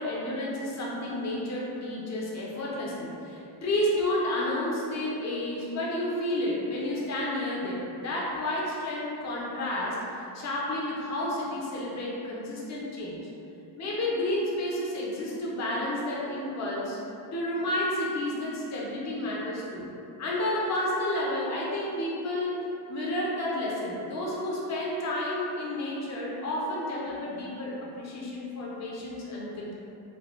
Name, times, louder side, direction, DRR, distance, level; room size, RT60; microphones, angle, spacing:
voice 1, 0.0-13.2 13.8-17.0 17.3-19.9 20.2-22.6 22.9-29.7, left 1 dB, 40° left, -5 dB, 0.6 m, -31 dB
2.7 x 2.2 x 3.3 m, 2.7 s
wide cardioid pair, 160°, 41 cm